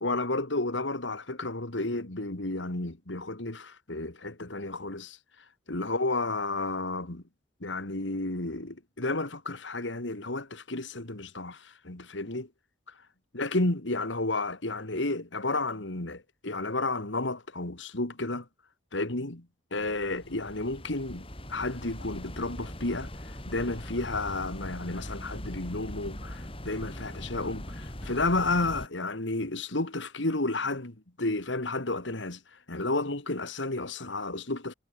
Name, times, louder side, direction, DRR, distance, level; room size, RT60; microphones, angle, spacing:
voice 1, 0.0-5.2 5.7-7.2 7.6-12.5 13.3-18.5 18.9-19.5 19.7-23.1 23.5-32.4 32.7-34.7, left 2 dB, 75° left, 2.5 m, -32 dB
sound 1, 19.7-28.9, equal, 30° left, 6.8 m, -41 dB
head